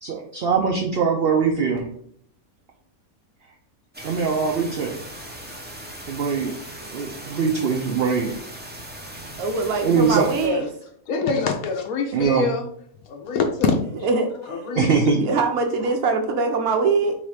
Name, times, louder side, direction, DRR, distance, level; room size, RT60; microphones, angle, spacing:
voice 1, 0.0-1.9 4.0-4.9 6.1-6.5 6.9-8.3 9.8-10.3 12.1-12.5 14.8-15.3, right 5 dB, 60° right, 1 dB, 0.6 m, -22 dB
sound 1, 3.9-10.5, right 1 dB, 10° right, 0.5 m, -39 dB
voice 2, 9.4-10.6 14.0-14.7 15.2-17.1, right 4 dB, 80° right, 3 dB, 1.1 m, -23 dB
voice 3, 11.1-12.7 13.0-13.8 14.5-15.0, left 4 dB, 80° left, 3 dB, 1.0 m, -24 dB
3.9 x 2.9 x 4.7 m, 0.64 s
omnidirectional pair, 1.5 m